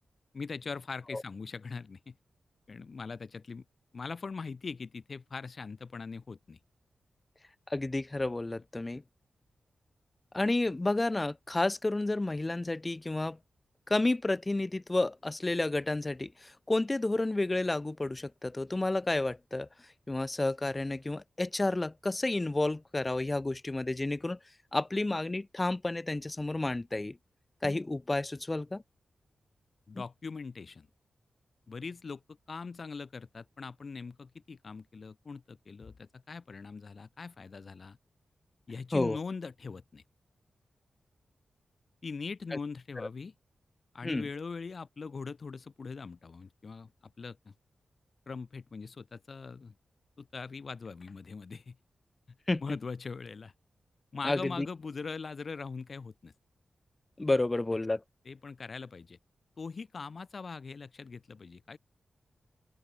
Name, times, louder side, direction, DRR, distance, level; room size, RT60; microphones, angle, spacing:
voice 1, 0.3-2.1 2.7-3.6 3.9-6.6 29.9-30.9 31.7-38.0 38.7-40.0 42.0-43.3 43.9-46.9 47.2-47.5 48.3-49.7 50.2-51.8 52.6-53.5 54.1-56.3 58.3-59.2 59.6-61.8, left 4 dB, 50° left, 0.9 m, -41 dB
voice 2, 7.7-9.0 10.3-13.4 13.9-19.7 20.1-24.4 24.7-27.2 27.6-28.8 29.9-30.0 38.9-39.2 42.5-42.6 43.0-43.1 44.0-44.3 52.5-52.6 54.2-54.7 57.2-58.0, left 2 dB, 20° left, 0.4 m, -31 dB
open air
wide cardioid pair, 105°, 0 cm